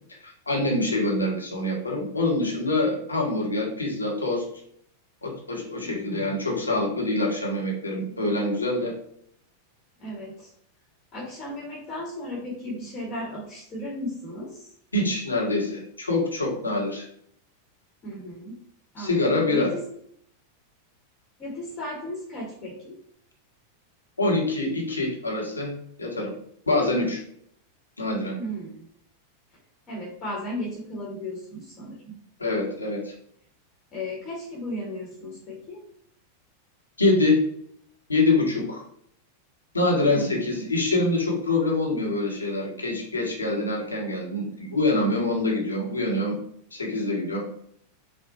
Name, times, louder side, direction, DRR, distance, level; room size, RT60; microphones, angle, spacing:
voice 1, 0.2-4.4 5.2-8.9 14.9-17.0 19.0-19.7 24.2-25.7 26.0-26.3 26.7-27.2 28.0-28.3 32.4-33.1 37.0-37.4 38.1-38.8 39.7-46.4 46.7-47.4, left 2 dB, 85° left, -1 dB, 1.1 m, -25 dB
voice 2, 5.8-6.4 10.0-10.5 11.1-14.7 18.0-18.5 18.9-19.8 21.4-23.0 28.4-28.8 29.9-32.1 33.9-35.8 40.1-40.7, left 1 dB, 30° left, -4 dB, 1.3 m, -35 dB
4.3 x 2.2 x 2.7 m, 0.66 s
figure-of-eight pair, 90°, 0 cm